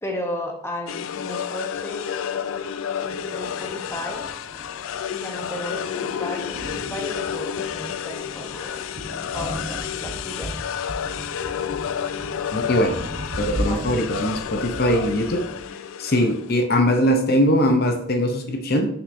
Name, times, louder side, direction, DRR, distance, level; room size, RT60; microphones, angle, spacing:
voice 1, 0.0-2.0 3.0-4.2 5.1-8.7 9.3-10.6 13.6-13.8 16.6-16.7, left 1 dB, 10° left, 2 dB, 1.0 m, -34 dB
sound 1, 0.9-16.5, left 8 dB, 75° left, 0.3 m, -30 dB
Thunder, 3.1-15.7, equal, 55° right, 1.0 m, -37 dB
voice 2, 12.5-12.9 13.4-15.4 16.0-18.9, equal, 50° left, 5 dB, 0.8 m, -21 dB
6.7 x 5.9 x 2.7 m, 0.74 s
head